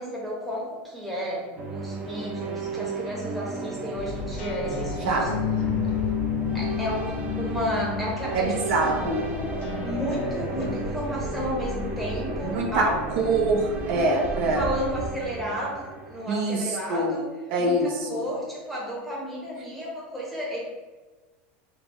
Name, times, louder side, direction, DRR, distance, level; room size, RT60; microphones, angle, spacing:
voice 1, 0.0-5.3 6.5-8.5 8.8-9.1 9.8-13.0 13.9-14.2 14.5-17.3 17.6-20.6, equal, ahead, -5 dB, 1.0 m, -32 dB
sound 1, 1.6-16.3, right 4 dB, 25° right, 0.5 m, -34 dB
sound 2, 4.0-10.8, left 8 dB, 75° left, 0.5 m, -31 dB
voice 2, 8.3-9.3 12.4-12.9 13.2-14.6 16.3-17.2 17.5-18.2, right 2 dB, 65° right, 0 dB, 0.8 m, -24 dB
sound 3, 8.7-14.0, left 2 dB, 30° left, 0.7 m, -36 dB
5.0 x 2.3 x 3.0 m, 1.3 s
supercardioid pair, 155°, 6 cm